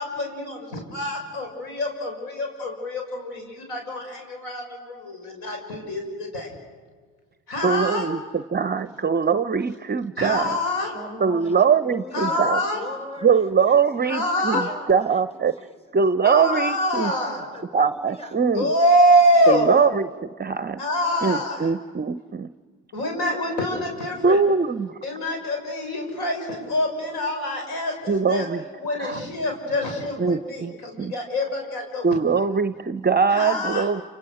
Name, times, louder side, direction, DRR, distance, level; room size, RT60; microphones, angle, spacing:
voice 1, 0.0-6.5 7.5-8.1 10.2-10.9 12.1-12.8 14.0-14.7 16.2-17.4 18.5-19.7 20.8-21.7 22.9-24.4 25.0-28.5 28.8-32.4 33.3-33.9, equal, 70° left, 2 dB, 6.6 m, -25 dB
voice 2, 7.6-10.6 11.2-12.6 13.2-14.6 14.9-15.5 15.9-17.1 17.7-18.7 19.5-20.1 20.4-20.8 21.2-22.5 24.2-24.9 28.1-28.6 29.0-29.1 30.2-30.7 31.0-31.1 32.0-34.0, right 5 dB, 25° right, 13 dB, 0.7 m, -22 dB
voice 3, 10.9-15.9 17.0-18.4 19.6-19.9, left 1 dB, 15° left, 4 dB, 5.2 m, -40 dB
29.0 x 28.0 x 6.5 m, 1.5 s
hypercardioid pair, 65°, 40 cm